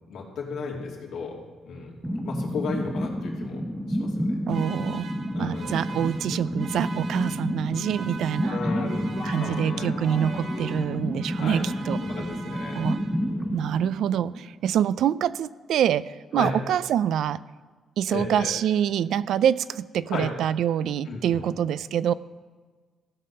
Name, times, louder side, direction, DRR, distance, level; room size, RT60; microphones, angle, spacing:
voice 1, 0.1-2.0 2.2-4.4 5.3-6.0 8.5-9.1 9.4-9.9 10.2-10.3 11.4-11.6 12.0-12.8 13.2-13.8 16.3-16.6 18.1-18.6 20.1-20.3 21.0-21.4, left 4 dB, 80° left, -2 dB, 2.6 m, -35 dB
sound 1, 2.0-14.7, equal, 5° right, 0.8 m, -30 dB
sound 2, 4.5-13.5, right 4 dB, 55° right, 0.9 m, -43 dB
voice 2, 4.5-5.1 5.4-8.6 9.2-12.0 12.7-13.0 13.5-17.4 18.0-22.1, right 9 dB, 75° right, 17 dB, 0.3 m, -25 dB
sound 3, 8.4-11.3, left 6 dB, 60° left, 0.7 m, -40 dB
15.5 x 5.8 x 5.4 m, 1.4 s
cardioid pair, 90°, 0 cm